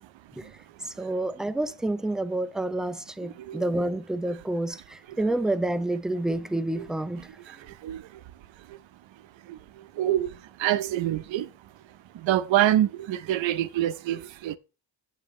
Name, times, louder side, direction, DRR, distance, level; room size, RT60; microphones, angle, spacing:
voice 1, 0.8-7.3, right 1 dB, ahead, 0.4 m, -29 dB
voice 2, 3.2-3.6 5.1-5.2 6.8-6.9 7.3-8.2 8.6-8.8 9.4-11.5 12.1-14.6, right 12 dB, 75° right, 0.7 m, -27 dB
8.3 x 7.1 x 3.1 m
cardioid pair, 85°, 46 cm